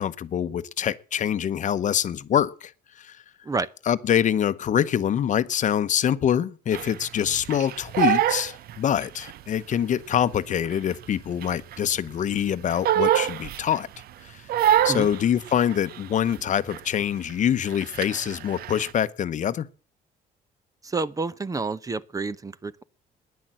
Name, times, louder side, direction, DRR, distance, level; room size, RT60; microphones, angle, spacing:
voice 1, 0.0-2.7 3.0-3.2 3.9-13.9 14.2-14.4 14.8-19.7, left 9 dB, 45° left, 0.9 m, -25 dB
Crying sobbing, 6.7-9.4 9.7-12.0 12.3-14.0 14.5-16.4 16.7-17.0 17.3-18.9, right 11 dB, 65° right, 0.7 m, -26 dB
voice 2, 20.8-22.8, right 3 dB, 20° right, 0.7 m, -29 dB
14.0 x 10.5 x 7.6 m
cardioid pair, 110°, 17 cm